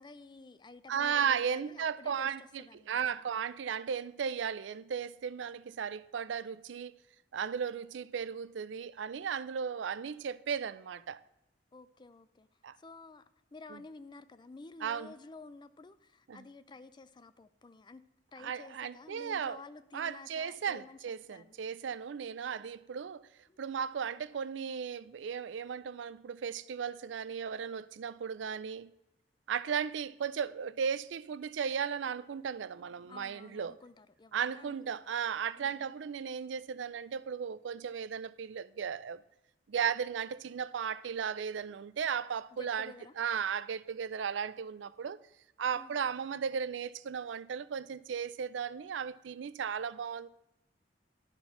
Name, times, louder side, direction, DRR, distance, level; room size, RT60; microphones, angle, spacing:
voice 1, 0.0-3.3 11.7-12.5 12.8-13.2 13.5-18.0 18.3-21.0 21.3-21.6 22.6-22.7 23.5-23.6 33.1-35.0 35.6-35.9 42.5-43.1 45.7-46.0, left 3 dB, 25° left, 0.4 m, -52 dB
voice 2, 0.9-2.4 2.9-7.0 7.3-11.2 12.6-12.8 13.7-13.8 14.8-15.1 16.3-16.4 18.4-19.6 19.9-23.3 23.6-28.9 29.5-33.8 34.3-39.2 39.7-45.2 45.6-50.3, right 7 dB, 85° right, 0.4 m, -35 dB
11.5 x 4.4 x 5.6 m
head